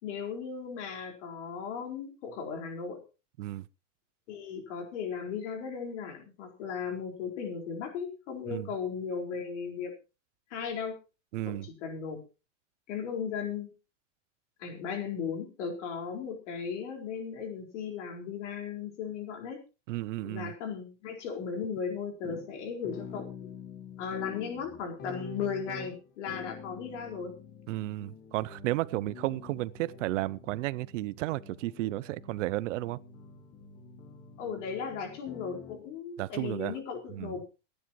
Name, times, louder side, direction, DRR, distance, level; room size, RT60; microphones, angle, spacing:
voice 1, 0.0-3.0 4.3-9.9 10.5-11.0 11.5-12.2 12.9-13.7 14.6-19.6 20.2-23.3 24.0-27.3 34.4-37.4, left 6 dB, 70° left, 4.5 m, -36 dB
voice 2, 11.3-11.7 19.9-20.5 27.7-33.0 36.2-36.8 37.1-37.4, right 18 dB, 75° right, 0.7 m, -33 dB
sound 1, 22.2-35.8, left 6 dB, 25° left, 1.3 m, -47 dB
24.0 x 10.0 x 3.0 m
supercardioid pair, 170°, 37 cm